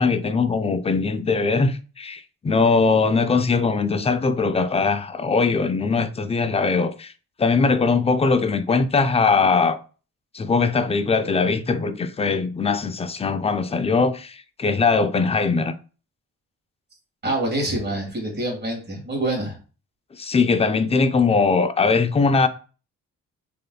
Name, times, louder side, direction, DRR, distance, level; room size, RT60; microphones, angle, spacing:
voice 1, 0.0-7.1 7.4-9.8 10.3-15.7 20.1-22.5, left 4 dB, 20° left, 0.4 m, -21 dB
voice 2, 17.2-19.6, right 1 dB, 30° right, 1.8 m, -26 dB
3.7 x 3.2 x 2.3 m
cardioid pair, 70°, 34 cm